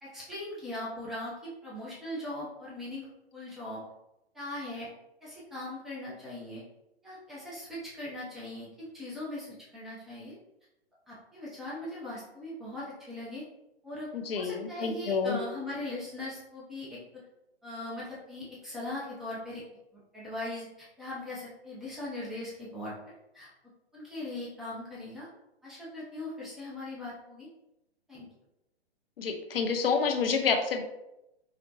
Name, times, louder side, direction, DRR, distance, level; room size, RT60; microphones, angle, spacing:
voice 1, 0.0-3.8 4.3-4.9 5.2-6.6 7.0-10.3 11.1-13.4 13.8-17.2 17.6-19.6 19.9-23.5 23.9-25.3 25.6-27.5 28.1-28.3, left 1 dB, ahead, -8 dB, 0.5 m, -40 dB
voice 2, 14.1-15.4 29.2-30.8, left 5 dB, 60° left, 4 dB, 0.7 m, -28 dB
4.9 x 2.1 x 2.6 m, 0.88 s
figure-of-eight pair, 125°, 32 cm